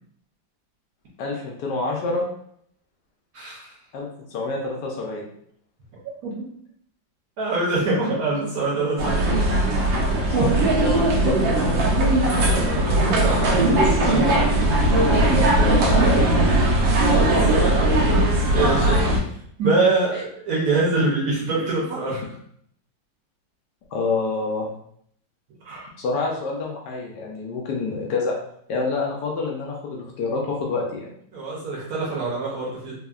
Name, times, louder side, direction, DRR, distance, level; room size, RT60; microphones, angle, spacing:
voice 1, 1.2-2.3 3.9-5.2 10.3-11.8 15.3-15.8 23.9-24.7 26.0-28.4 28.7-31.1, left 3 dB, 75° left, -1 dB, 1.1 m, -27 dB
voice 2, 3.3-3.7 6.2-6.5 7.4-9.4 12.4-14.5 17.2-17.9 18.5-19.1 19.6-22.2 25.6-25.9 31.3-32.9, right 3 dB, 60° right, -4 dB, 1.0 m, -25 dB
sound 1, 9.0-19.2, right 1 dB, 90° right, 1.3 m, -19 dB
3.4 x 2.0 x 2.3 m, 0.67 s
omnidirectional pair, 2.0 m